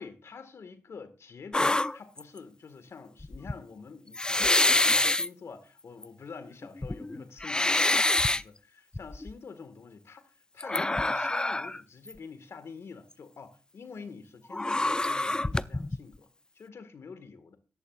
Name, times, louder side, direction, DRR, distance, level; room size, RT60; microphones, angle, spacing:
voice 1, 0.0-16.3 16.6-17.6, left 5 dB, 60° left, 1.8 m, -46 dB
sound 1, 1.5-2.4 3.2-3.5 4.1-5.3 6.0-6.1 6.6-8.4 8.9-9.3 10.6-11.8 12.1-12.2 14.5-16.0, left 2 dB, 15° left, 0.4 m, -26 dB
14.5 x 11.5 x 2.5 m
supercardioid pair, 50°, 5 cm